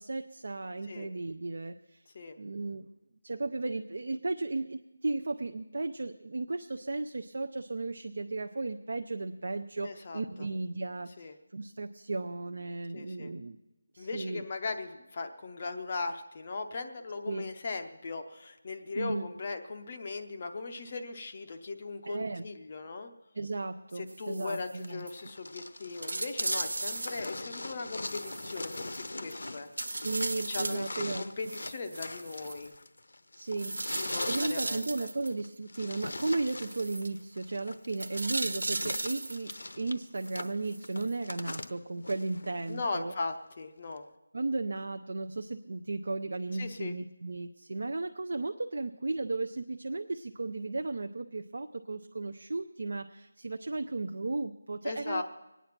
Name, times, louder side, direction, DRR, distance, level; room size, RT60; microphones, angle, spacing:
voice 1, 0.0-2.0 2.4-2.9 3.2-13.6 13.9-14.4 17.3-17.5 18.9-19.3 22.0-22.4 23.3-25.0 29.9-31.2 33.3-43.1 44.3-55.2, right 3 dB, 45° right, 7 dB, 0.5 m, -35 dB
voice 2, 9.8-10.2 11.2-11.4 12.9-13.3 14.0-23.1 24.0-30.1 30.5-32.7 34.0-35.1 42.7-44.0 46.6-46.9 54.8-55.2, left 3 dB, 20° left, 6 dB, 0.6 m, -38 dB
sound 1, 24.1-24.8 25.1-25.2 25.6-25.7 26.0-27.3 28.0-29.3 29.8-30.9 31.4-32.7 33.6-35.3 36.0-37.1 38.0-39.6 40.2-41.1 41.6-41.7, right 2 dB, 85° right, 1.0 m, -37 dB
sound 2, 24.8-42.9 44.0-44.1, left 2 dB, 60° left, 0.8 m, -42 dB
23.5 x 9.3 x 5.9 m, 0.98 s
figure-of-eight pair, 180°, 0 cm